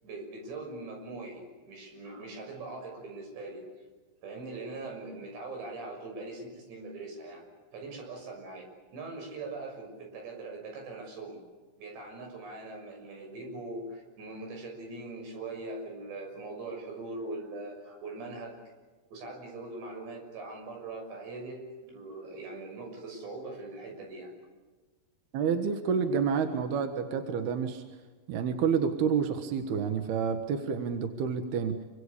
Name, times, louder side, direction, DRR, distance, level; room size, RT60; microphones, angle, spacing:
voice 1, 0.0-3.7 4.2-7.4 7.7-11.4 11.8-18.6 19.1-24.3, right 2 dB, 85° right, 2 dB, 8.7 m, -41 dB
voice 2, 25.3-27.8 28.3-31.7, right 6 dB, 70° right, 7 dB, 3.4 m, -29 dB
27.5 x 25.0 x 8.4 m, 1.3 s
omnidirectional pair, 4.9 m